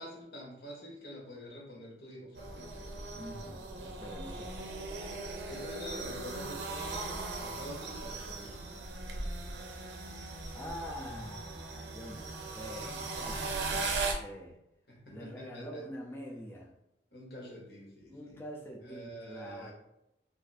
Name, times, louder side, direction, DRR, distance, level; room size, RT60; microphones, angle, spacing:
voice 1, 0.0-2.9 5.5-8.6 14.9-15.8 17.1-18.4 18.8-19.7, equal, 60° left, -3 dB, 1.0 m, -47 dB
sound 1, 2.3-14.1, right 3 dB, 80° right, 0.5 m, -38 dB
voice 2, 3.1-4.7 10.5-14.6 15.1-16.7 18.1-19.7, equal, 15° left, -2 dB, 0.4 m, -45 dB
2.6 x 2.5 x 4.0 m, 0.86 s
head